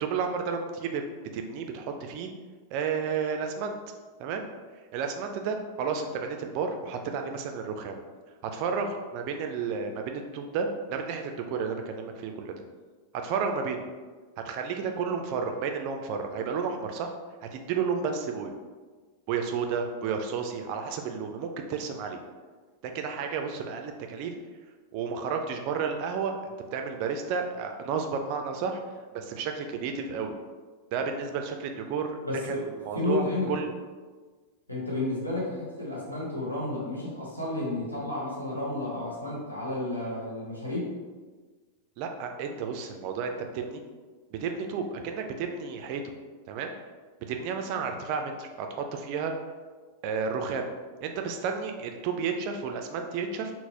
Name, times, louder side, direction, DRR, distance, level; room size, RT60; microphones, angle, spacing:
voice 1, 0.0-1.0 1.3-2.3 2.7-3.8 4.2-4.4 4.9-8.0 8.4-12.5 13.1-13.9 14.4-17.1 17.4-18.5 19.3-22.2 22.8-24.3 24.9-28.8 29.1-30.3 30.9-32.2 32.4-33.7 42.0-43.8 44.3-46.1 46.5-46.7 47.3-49.3 50.0-50.7 51.0-53.5, right 5 dB, 45° right, 5 dB, 0.3 m, -32 dB
voice 2, 32.2-32.6 32.9-33.5 34.7-40.9, left 2 dB, 85° left, -6 dB, 1.0 m, -31 dB
3.8 x 2.0 x 2.8 m, 1.4 s
figure-of-eight pair, 90°, 0 cm